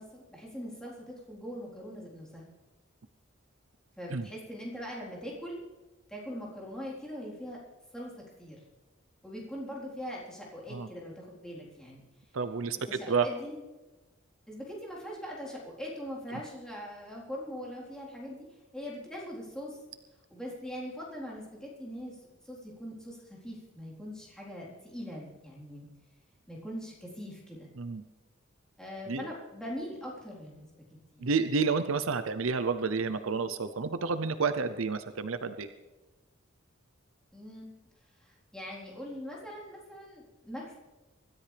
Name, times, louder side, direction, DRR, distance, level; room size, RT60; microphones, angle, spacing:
voice 1, 0.0-2.4 4.0-5.6 6.1-7.6 7.9-8.6 9.2-12.0 12.9-13.6 14.5-18.5 18.7-19.8 20.3-25.9 26.5-27.7 28.8-30.7 31.1-31.3 37.3-37.7 38.2-40.7, equal, 5° left, -5 dB, 4.0 m, -42 dB
voice 2, 12.3-12.8 13.1-13.3 27.8-28.0 29.1-29.3 31.2-35.7, right 5 dB, 85° right, 11 dB, 0.7 m, -30 dB
24.5 x 13.0 x 3.4 m, 1.2 s
head